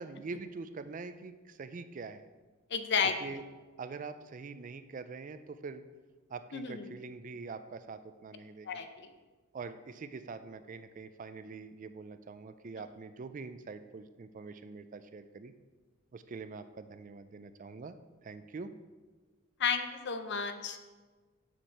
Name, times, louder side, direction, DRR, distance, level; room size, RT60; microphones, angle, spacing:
voice 1, 0.0-2.3 3.2-3.4 3.8-5.8 6.3-8.8 9.5-15.5 16.1-18.0 18.2-18.7, right 4 dB, 35° right, 11 dB, 0.3 m, -44 dB
voice 2, 2.7-3.1 6.5-6.9 8.7-8.9 19.6-20.9, left 6 dB, 50° left, 9 dB, 0.6 m, -32 dB
7.3 x 4.5 x 6.5 m, 1.3 s
head